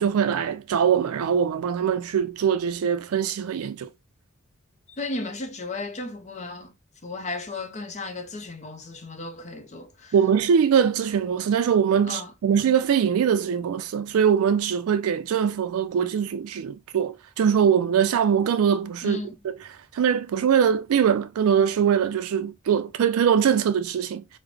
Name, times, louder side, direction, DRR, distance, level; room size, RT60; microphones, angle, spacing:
voice 1, 0.0-3.9 10.1-19.2 19.4-19.5 19.9-24.2, right 7 dB, 85° right, 0.3 m, -22 dB
voice 2, 4.9-6.7 7.0-10.1 12.1-12.3 19.0-19.3, left 2 dB, 35° left, 0.6 m, -34 dB
3.7 x 2.1 x 3.3 m
head